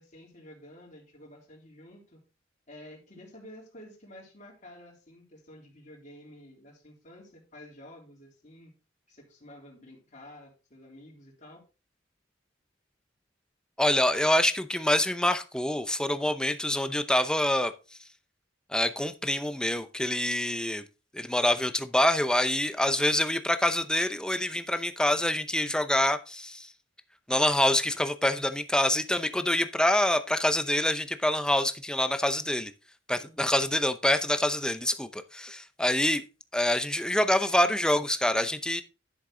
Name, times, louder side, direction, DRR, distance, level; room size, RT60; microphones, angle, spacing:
voice 1, 0.0-2.2 2.7-8.7 9.1-11.6 33.2-33.5, left 1 dB, 40° left, -1 dB, 3.4 m, -50 dB
voice 2, 13.8-17.7 18.7-20.8 21.1-26.7 27.3-32.7 33.1-36.2 36.5-38.8, left 1 dB, 5° left, 10 dB, 0.6 m, -26 dB
11.0 x 6.5 x 3.7 m, 0.32 s
head